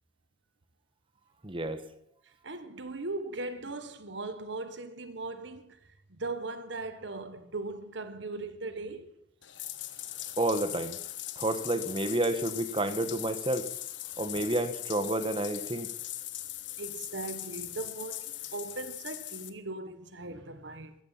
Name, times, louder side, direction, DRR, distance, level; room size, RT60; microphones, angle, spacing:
voice 1, 1.4-1.8 10.4-11.0 11.4-13.7 14.2-15.9, right 1 dB, 30° right, 1.2 m, -30 dB
voice 2, 2.4-5.8 6.1-9.2 16.8-20.9, right 2 dB, 70° right, 1.3 m, -39 dB
Bathtub (filling or washing), 9.4-19.5, left 13 dB, 70° left, 1.2 m, -40 dB
15.0 x 13.5 x 5.7 m
head